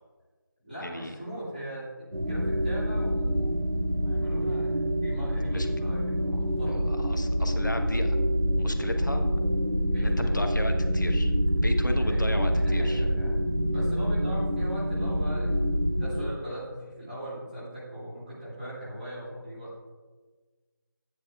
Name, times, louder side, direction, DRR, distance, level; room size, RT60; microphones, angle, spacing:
voice 1, 0.6-3.5 4.0-6.9 9.9-10.4 12.0-19.7, right 1 dB, 25° right, -11 dB, 2.8 m, -40 dB
sound 1, 2.1-16.3, equal, 85° right, 1.9 m, -26 dB
voice 2, 6.9-8.2 8.6-9.3 9.9-11.3 11.6-13.0, left 1 dB, 60° left, 5 dB, 1.2 m, -34 dB
12.5 x 9.9 x 2.5 m, 1.4 s
figure-of-eight pair, 175°, 12 cm